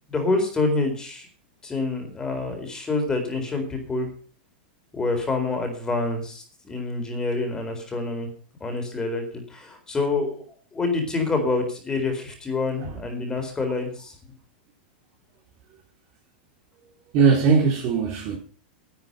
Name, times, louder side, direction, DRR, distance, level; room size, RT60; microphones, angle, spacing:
voice 1, 0.1-1.3 1.6-4.1 4.9-8.3 8.6-10.4 10.7-14.1, left 3 dB, 10° left, 4.3 m, -27 dB
voice 2, 17.1-18.4, right 5 dB, 40° right, 4.1 m, -20 dB
12.5 x 12.0 x 5.5 m
supercardioid pair, 150°, 6 cm